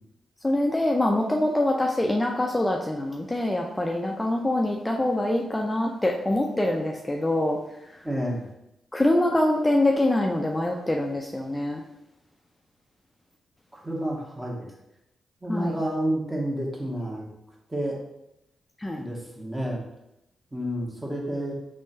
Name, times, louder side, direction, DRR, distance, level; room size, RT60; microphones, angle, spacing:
voice 1, 0.4-7.6 8.9-11.8 15.5-15.8 18.8-19.0, left 1 dB, 20° left, 0 dB, 0.5 m, -24 dB
voice 2, 8.0-8.5 13.8-14.7 15.4-17.2 17.7-18.0 19.0-19.8 20.5-21.5, right 1 dB, 15° right, -2 dB, 1.2 m, -29 dB
3.5 x 3.4 x 2.7 m, 0.86 s
supercardioid pair, 45°, 0 cm